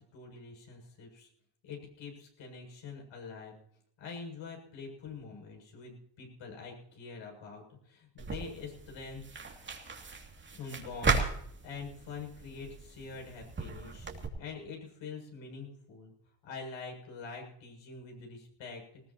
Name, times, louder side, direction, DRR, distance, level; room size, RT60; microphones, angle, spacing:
voice 1, 0.1-1.3 1.6-3.5 4.0-9.4 10.5-11.3 11.6-14.1 14.4-16.1 16.4-19.0, left 4 dB, 65° left, 1 dB, 7.4 m, -45 dB
sound 1, 8.2-14.3, right 4 dB, 20° right, 2.6 m, -36 dB
19.5 x 18.5 x 3.0 m, 0.68 s
cardioid pair, 125°, 50 cm